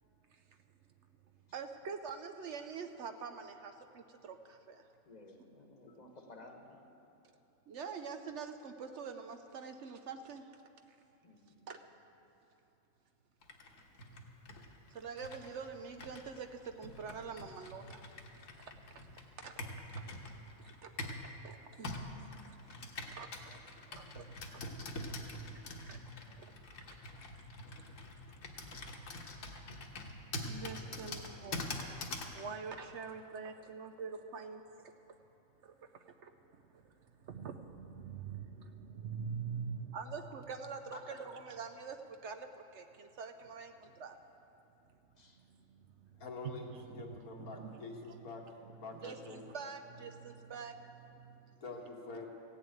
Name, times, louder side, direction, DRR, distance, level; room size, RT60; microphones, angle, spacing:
voice 1, 1.5-4.8 7.7-10.6 10.9-11.0 11.7-11.8 14.9-18.0 18.6-19.1 19.4-20.0 20.6-22.6 23.1-23.6 23.9-24.3 24.5-24.6 25.5-26.0 26.4-26.9 30.4-31.7 32.2-35.2 35.6-44.2 45.4-46.1 46.4-48.2 48.7-51.6, right 5 dB, 60° right, 7 dB, 0.9 m, -46 dB
voice 2, 5.0-6.8 11.2-11.6 28.7-28.9 30.3-31.6 45.2-45.4, left 2 dB, 30° left, 3 dB, 1.2 m, -57 dB
Computer keyboard, 13.4-21.3 21.8-32.4, left 2 dB, 65° left, 1.5 m, -45 dB
voice 3, 46.2-49.5 51.6-52.3, left 3 dB, 85° left, 0 dB, 1.9 m, -46 dB
15.5 x 7.1 x 9.0 m, 2.9 s
omnidirectional pair, 1.5 m